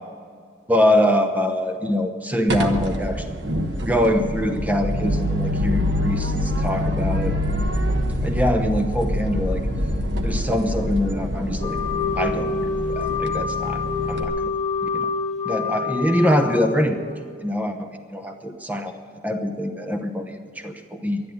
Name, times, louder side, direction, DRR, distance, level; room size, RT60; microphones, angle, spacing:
voice 1, 0.7-3.4 3.8-7.4 8.2-9.7 10.2-11.8 12.2-12.5 12.9-13.8 14.1-14.5 14.8-15.1 15.4-17.0 17.4-18.9 19.2-21.2, left 1 dB, 10° right, 6 dB, 0.9 m, -24 dB
sound 1, 2.5-14.2, equal, 80° right, 1.3 m, -25 dB
Wind instrument woodwind instrument, 11.6-17.2, left 4 dB, 35° left, 1.7 m, -27 dB
12.0 x 10.5 x 9.4 m, 2.2 s
head